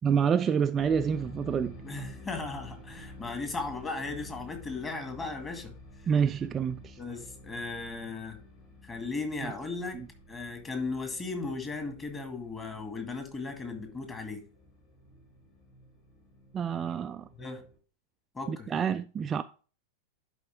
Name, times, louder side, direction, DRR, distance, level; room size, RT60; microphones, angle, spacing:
voice 1, 0.0-1.7 6.1-7.0 16.5-17.3 18.5-19.4, right 7 dB, 25° right, 0.3 m, -27 dB
sound 1, 0.8-17.8, left 1 dB, 40° left, 4.4 m, -50 dB
voice 2, 1.8-5.7 7.0-8.4 8.8-10.0 10.3-14.4 17.4-17.6 18.3-18.7, left 3 dB, 20° left, 2.0 m, -36 dB
10.5 x 4.4 x 3.5 m
figure-of-eight pair, 90°, 0 cm